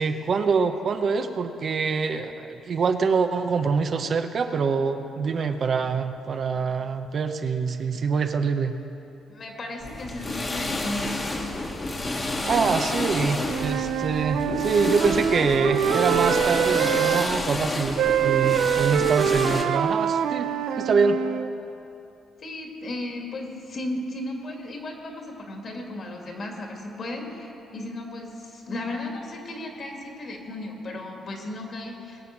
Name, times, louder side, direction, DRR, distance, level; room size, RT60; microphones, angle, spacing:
voice 1, 0.0-8.7 12.4-20.5 20.8-21.2, right 5 dB, 50° right, 7 dB, 0.8 m, -25 dB
voice 2, 9.3-11.3 22.4-32.2, left 1 dB, 50° left, 1 dB, 2.5 m, -35 dB
sound 1, 9.8-19.6, left 2 dB, 30° left, 1.6 m, -30 dB
Wind instrument woodwind instrument, 13.3-17.3 18.0-21.5, right 9 dB, 80° right, 0.5 m, -25 dB
21.0 x 7.6 x 6.0 m, 2.8 s
cardioid pair, 90°, 0 cm